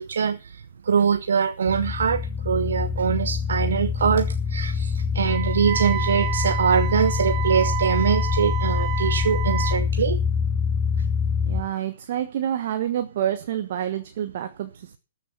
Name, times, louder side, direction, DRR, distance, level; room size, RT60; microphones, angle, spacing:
voice 1, 0.0-10.2, right 6 dB, 65° right, 0.9 m, -23 dB
sound 1, 1.7-11.6, left 6 dB, 10° left, 1.2 m, -25 dB
Wind instrument woodwind instrument, 5.2-9.8, right 14 dB, 35° right, 1.2 m, -30 dB
voice 2, 11.4-15.0, right 10 dB, 50° right, 1.3 m, -28 dB
13.0 x 7.3 x 7.1 m
figure-of-eight pair, 120°, 0 cm